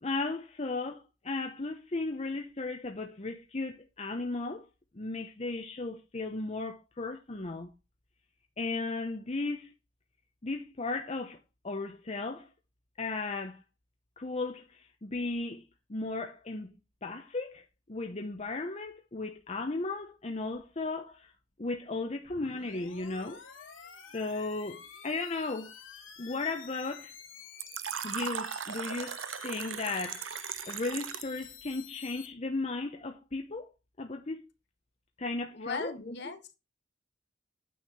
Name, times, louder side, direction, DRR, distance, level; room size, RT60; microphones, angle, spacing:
voice 1, 0.0-4.7 4.9-7.7 8.6-9.7 10.4-11.4 11.6-12.5 13.0-13.6 14.2-16.7 17.0-17.6 17.9-21.3 21.6-23.4 24.1-25.7 26.2-27.1 28.0-33.7 34.0-34.5 35.2-36.2, left 3 dB, 35° left, 0.9 m, -35 dB
sound 1, 22.3-32.3, left 7 dB, 90° left, 1.7 m, -50 dB
Fill (with liquid), 27.6-31.4, right 9 dB, 85° right, 0.6 m, -38 dB
voice 2, 35.5-36.4, left 4 dB, 60° left, 1.6 m, -38 dB
9.4 x 5.7 x 4.2 m
head